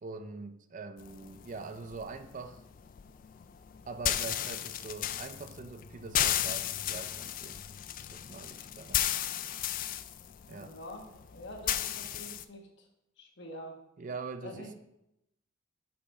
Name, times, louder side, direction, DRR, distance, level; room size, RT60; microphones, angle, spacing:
voice 1, 0.0-2.6 3.9-7.6 8.1-9.1 10.5-10.8 14.0-14.7, right 4 dB, 40° right, 9 dB, 0.4 m, -43 dB
sound 1, 1.0-12.4, left 11 dB, 40° left, 0.3 m, -35 dB
voice 2, 10.5-12.9 13.2-13.8 14.4-14.7, equal, 60° left, 2 dB, 1.3 m, -46 dB
6.6 x 5.6 x 4.2 m, 0.82 s
head